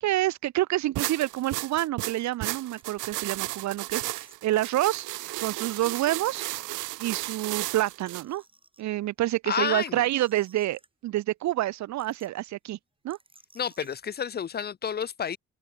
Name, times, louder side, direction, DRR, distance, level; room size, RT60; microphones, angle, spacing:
voice 1, 0.0-5.1 5.4-6.5 7.0-8.4 8.8-12.8 13.0-13.2, right 15 dB, 65° right, 0.6 m, -28 dB
sound 1, 1.0-8.2, right 18 dB, 90° right, 0.9 m, -34 dB
sound 2, 1.3-1.4 1.8-1.9 2.5-3.2 3.6-3.7 3.9-4.5 5.5-6.8 7.5-8.8 9.8-11.2 11.6-11.7 12.0-12.5 13.1-14.0, right 3 dB, 15° right, 3.2 m, -58 dB
voice 2, 9.5-10.1 13.6-15.4, left 7 dB, 35° left, 0.5 m, -30 dB
open air
cardioid pair, 90°, 30 cm